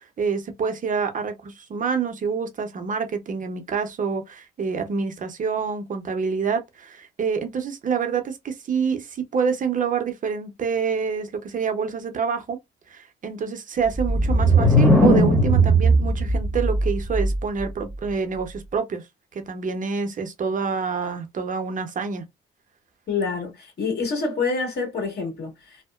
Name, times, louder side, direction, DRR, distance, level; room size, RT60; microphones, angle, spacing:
voice 1, 0.0-12.6 12.9-19.0 19.3-22.2, right 6 dB, 40° right, 0.6 m, -27 dB
sound 1, 13.8-17.7, right 1 dB, 5° left, 0.9 m, -18 dB
voice 2, 23.1-25.8, left 4 dB, 55° left, 1.6 m, -27 dB
2.7 x 2.0 x 2.3 m
cardioid pair, 90°, 20 cm